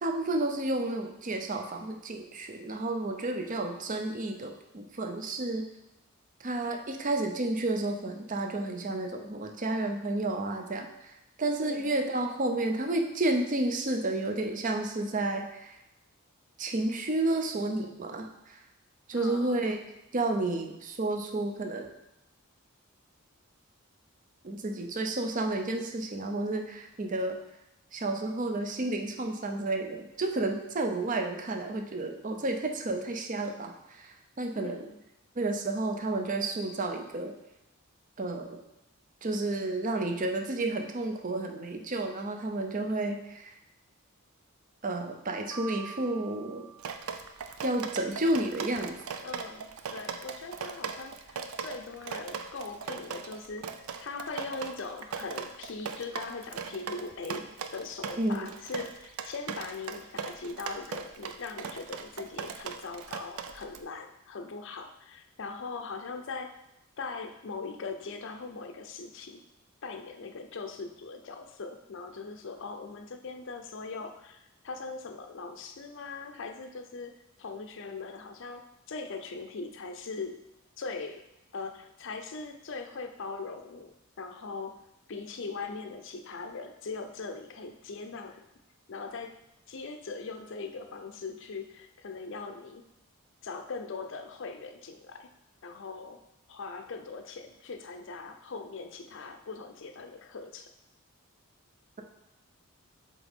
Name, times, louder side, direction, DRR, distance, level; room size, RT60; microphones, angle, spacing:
voice 1, 0.0-5.7 6.4-15.8 16.6-18.6 19.1-19.8 20.1-21.9 24.4-27.4 27.9-34.8 35.4-37.3 38.2-38.6 39.2-43.6 44.8-46.7 47.6-49.0 58.2-58.5, right 2 dB, 35° right, 4 dB, 0.6 m, -31 dB
voice 2, 19.1-19.7 34.5-35.0 49.2-66.6 67.0-69.4 69.8-80.4 80.8-81.3 81.5-84.8 85.1-88.5 88.9-89.4 89.7-92.8 93.4-95.3 95.6-100.7, left 4 dB, 60° left, 6 dB, 0.5 m, -40 dB
Piano, 45.5-47.7, right 6 dB, 10° left, 0.8 m, -46 dB
Drip, 46.8-63.8, right 6 dB, 85° right, 0.5 m, -39 dB
7.6 x 3.5 x 3.6 m, 0.90 s
head